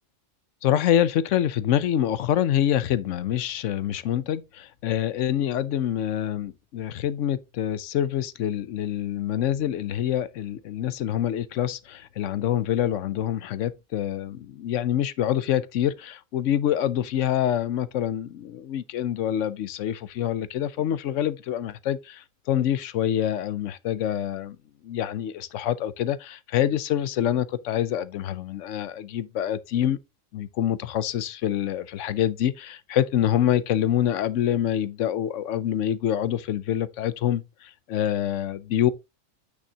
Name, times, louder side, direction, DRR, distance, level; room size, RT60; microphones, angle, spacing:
voice 1, 0.6-24.6 24.8-30.0 30.3-38.9, left 11 dB, 70° left, 1.0 m, -26 dB
8.5 x 6.3 x 2.8 m
omnidirectional pair, 1.3 m